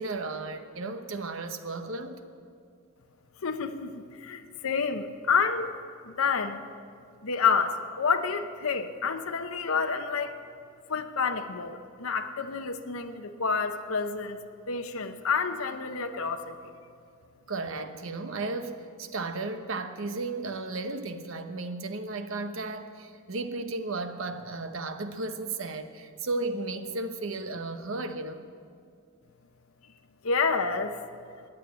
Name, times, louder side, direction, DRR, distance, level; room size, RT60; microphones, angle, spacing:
voice 1, 0.0-2.2 17.5-28.5, right 3 dB, 65° right, 8 dB, 1.0 m, -34 dB
voice 2, 3.4-5.7 6.0-6.6 7.2-10.4 10.9-14.4 14.7-16.6 30.2-31.0, left 5 dB, 80° left, 6 dB, 0.8 m, -29 dB
15.5 x 10.0 x 8.2 m, 2.3 s
head